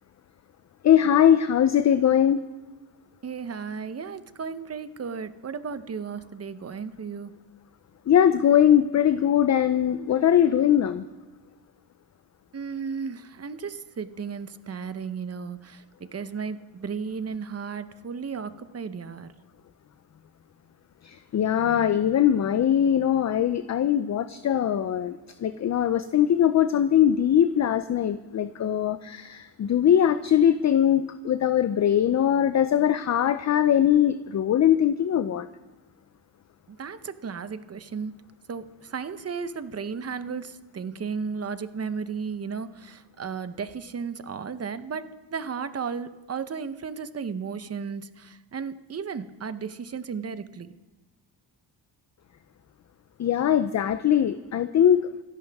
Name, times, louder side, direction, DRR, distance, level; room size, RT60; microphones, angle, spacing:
voice 1, 0.8-2.4 8.1-11.1 21.0-35.5 53.2-55.1, left 10 dB, 40° left, 12 dB, 0.5 m, -21 dB
voice 2, 3.2-7.3 12.5-15.8 16.1-19.3 36.7-38.1 38.5-50.7, right 6 dB, 35° right, 12 dB, 0.8 m, -34 dB
26.5 x 11.0 x 3.5 m, 1.3 s
cardioid pair, 115°, 44 cm